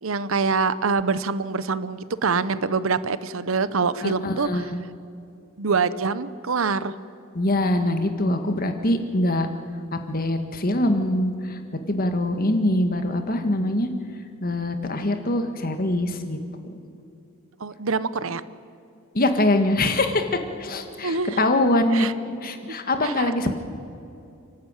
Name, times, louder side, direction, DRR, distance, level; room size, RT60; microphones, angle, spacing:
voice 1, 0.0-4.7 5.6-6.9 17.6-18.4 21.0-21.4 21.9-22.1 23.0-23.5, right 4 dB, 70° right, 15 dB, 0.8 m, -25 dB
voice 2, 4.0-4.8 7.4-9.5 9.9-11.6 11.9-13.9 14.4-16.4 19.1-20.3 20.6-22.1 22.4-23.5, left 1 dB, 45° left, 7 dB, 1.7 m, -23 dB
29.5 x 12.0 x 9.0 m, 2.6 s
head